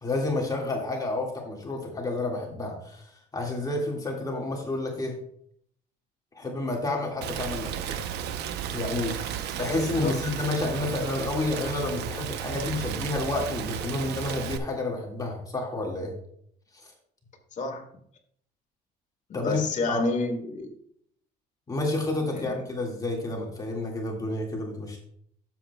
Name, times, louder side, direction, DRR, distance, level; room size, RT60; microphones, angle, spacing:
voice 1, 0.0-5.1 6.4-8.0 8.7-16.1 16.8-16.9 19.3-19.6 19.9-20.0 21.7-25.0, left 2 dB, 20° left, -1 dB, 1.8 m, -30 dB
Rain, 7.2-14.6, right 9 dB, 80° right, 0.7 m, -34 dB
voice 2, 9.7-10.2 17.5-17.9 19.3-20.7 22.3-22.6, left 3 dB, 45° left, 3 dB, 1.9 m, -30 dB
12.5 x 7.4 x 2.2 m, 0.66 s
cardioid pair, 110°, 17 cm